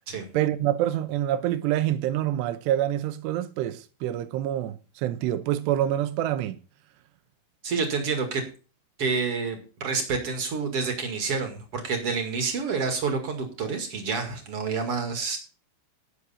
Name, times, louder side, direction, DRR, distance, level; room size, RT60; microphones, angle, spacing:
voice 1, 0.3-6.6, right 12 dB, 75° right, 2.8 m, -26 dB
voice 2, 7.6-8.4 9.0-15.4, right 4 dB, 45° right, 1.9 m, -28 dB
17.0 x 6.6 x 4.3 m
omnidirectional pair, 5.6 m